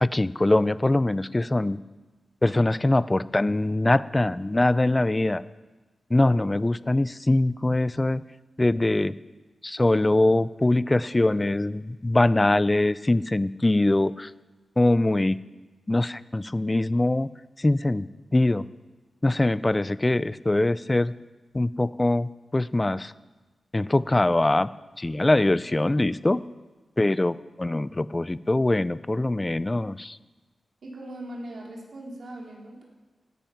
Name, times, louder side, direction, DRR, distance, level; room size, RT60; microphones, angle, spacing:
voice 1, 0.0-1.8 2.4-5.4 6.1-8.2 8.6-9.1 9.6-14.3 14.8-15.4 15.9-17.3 17.6-18.1 18.3-18.6 19.2-21.1 21.5-23.1 23.7-24.7 25.0-26.4 27.0-30.2, left 2 dB, 20° left, 17 dB, 0.4 m, -23 dB
voice 2, 30.8-32.8, right 1 dB, 65° right, -2 dB, 3.6 m, -39 dB
16.5 x 10.0 x 5.8 m, 1.2 s
wide cardioid pair, 125°, 0 cm